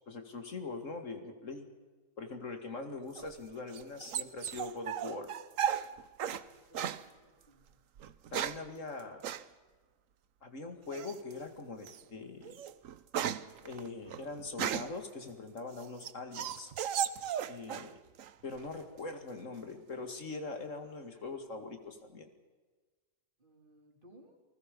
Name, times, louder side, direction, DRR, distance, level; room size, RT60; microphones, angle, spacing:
voice 1, 0.1-1.7 2.2-5.3 8.3-9.2 10.4-12.6 13.6-16.7 17.5-17.9 18.4-22.3, left 3 dB, 65° left, 6 dB, 2.5 m, -42 dB
sound 1, 3.2-6.4 6.7-7.0 8.0-8.7 9.2-9.4 10.9-11.3 11.8-12.0 12.4-15.0 15.6-17.9 18.2-18.8, right 9 dB, 75° right, 1.2 m, -36 dB
voice 2, 6.4-7.8 23.4-24.4, equal, 40° right, 1 dB, 4.3 m, -61 dB
29.5 x 20.5 x 5.3 m, 1.4 s
omnidirectional pair, 1.4 m